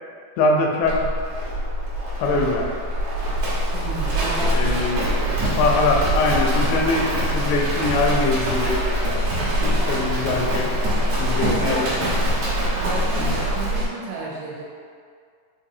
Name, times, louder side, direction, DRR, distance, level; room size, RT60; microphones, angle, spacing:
voice 1, 0.4-1.0 2.2-2.7 4.5-5.1 5.6-8.8 9.9-10.7 11.2-11.9, left 3 dB, 85° left, 0 dB, 2.8 m, -22 dB
Livestock farm animals working animals, 0.8-13.9, equal, 70° right, 2.0 m, -23 dB
voice 2, 3.7-4.7 5.3-5.4 11.3-12.2 12.7-14.6, right 2 dB, 85° right, -5 dB, 3.0 m, -32 dB
6.7 x 2.8 x 2.6 m, 2.2 s
omnidirectional pair, 5.2 m